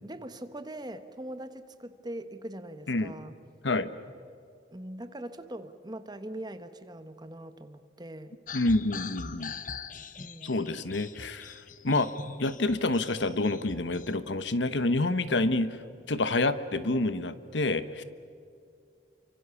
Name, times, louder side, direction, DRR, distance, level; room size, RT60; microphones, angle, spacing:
voice 1, 0.0-3.4 4.7-8.4 10.2-10.8, right 1 dB, 25° right, 10 dB, 1.2 m, -42 dB
voice 2, 8.5-9.5 10.4-11.5 11.8-12.1 12.4-15.8 16.1-18.0, left 2 dB, 80° left, 13 dB, 1.2 m, -28 dB
sound 1, 8.5-14.2, left 6 dB, 45° left, 1.0 m, -43 dB
29.5 x 25.0 x 7.1 m, 2.4 s
head